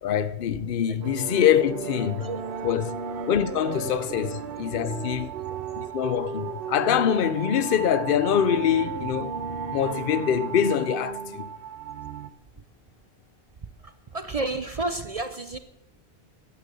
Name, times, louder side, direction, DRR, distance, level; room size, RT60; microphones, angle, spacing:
voice 1, 0.0-2.3 2.6-2.9 3.3-5.3 5.8-9.3 9.7-11.5, left 9 dB, 60° left, 0.8 m, -24 dB
sound 1, 1.0-12.3, right 8 dB, 80° right, 1.0 m, -37 dB
sound 2, 1.6-11.5, right 4 dB, 60° right, 1.3 m, -38 dB
voice 2, 14.1-15.6, right 2 dB, 40° right, 0.7 m, -30 dB
13.0 x 10.5 x 6.8 m
omnidirectional pair, 1.1 m